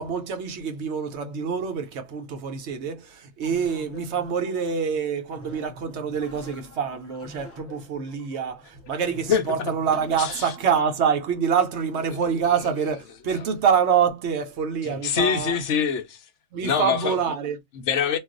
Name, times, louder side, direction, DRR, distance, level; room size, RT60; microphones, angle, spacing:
voice 1, 0.0-15.6 16.5-17.6, right 7 dB, 65° right, 0.9 m, -26 dB
sound 1, 3.4-10.9, left 2 dB, 20° left, 0.4 m, -46 dB
voice 2, 9.3-9.7 10.2-10.5 14.8-16.2 16.6-17.2 17.8-18.2, left 7 dB, 75° left, 1.0 m, -24 dB
2.3 x 2.3 x 3.7 m
omnidirectional pair, 1.3 m